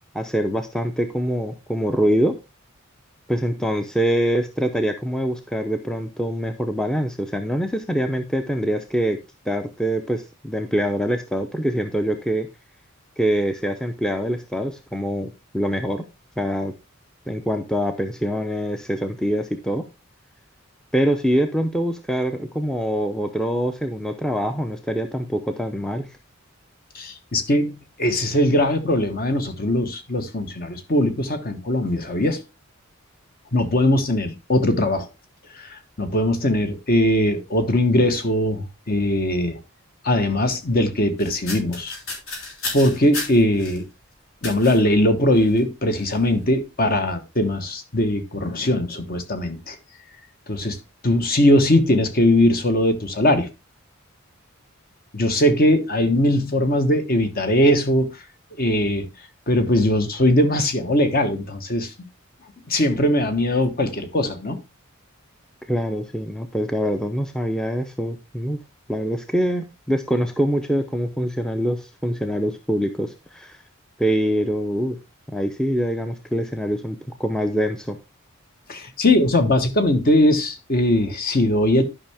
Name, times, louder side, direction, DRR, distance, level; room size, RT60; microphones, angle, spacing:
voice 1, 0.1-2.3 3.3-9.2 9.5-12.5 13.2-16.0 16.4-16.7 17.3-19.8 20.9-26.1 65.7-68.6 68.9-73.6 74.0-75.0 75.3-78.0, equal, 5° left, 0.6 m, -24 dB
voice 2, 26.9-32.4 33.5-35.1 35.7-39.6 40.0-41.9 42.7-43.8 44.4-49.7 50.5-50.8 51.0-53.5 55.1-58.1 58.6-59.0 59.5-61.9 62.7-64.6 78.7-81.8, left 1 dB, 45° left, 1.2 m, -20 dB
sound 1, 41.2-43.8 44.4-44.8 45.4-45.6 46.0-46.2, left 3 dB, 70° left, 4.5 m, -33 dB
11.5 x 5.5 x 3.5 m
head